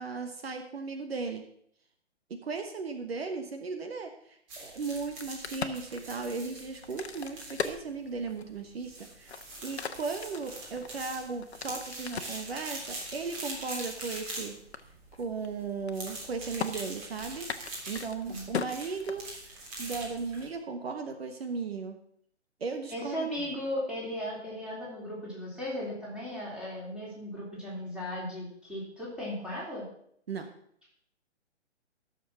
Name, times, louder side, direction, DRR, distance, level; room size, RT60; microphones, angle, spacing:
voice 1, 0.0-1.4 2.3-14.6 15.2-22.0 22.6-23.3 30.3-30.5, right 4 dB, 60° right, 6 dB, 1.4 m, -36 dB
sound 1, 4.5-20.5, right 2 dB, 25° right, 3.3 m, -43 dB
Crack, 5.0-8.6 9.1-12.4 13.0-14.4 14.7-14.8 15.1-15.5 15.7-16.3 16.6-16.7 17.4-19.6, left 6 dB, 65° left, 1.1 m, -38 dB
voice 2, 18.2-18.6 22.9-29.8, left 1 dB, 5° right, -6 dB, 3.5 m, -36 dB
14.0 x 6.7 x 5.8 m, 0.67 s
figure-of-eight pair, 140°, 35 cm